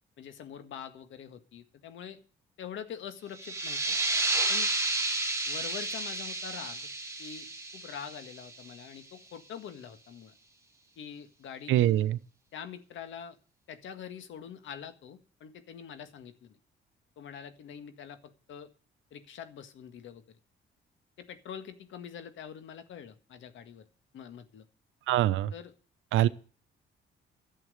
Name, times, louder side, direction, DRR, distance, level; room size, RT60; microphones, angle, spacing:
voice 1, 0.2-2.2 2.6-4.0 4.5-4.7 5.5-6.9 7.2-7.5 7.7-10.3 11.0-12.1 12.5-13.4 13.7-16.6 17.2-18.7 19.1-20.4 21.2-23.9 24.1-24.6 25.5-25.7, left 8 dB, 75° left, 1.8 m, -44 dB
sound 1, 3.3-8.7, right 2 dB, 15° right, 2.2 m, -31 dB
voice 2, 11.7-12.2 25.1-25.5 26.1-26.3, right 13 dB, 85° right, 0.8 m, -24 dB
11.5 x 7.7 x 9.3 m
cardioid pair, 90°, 20 cm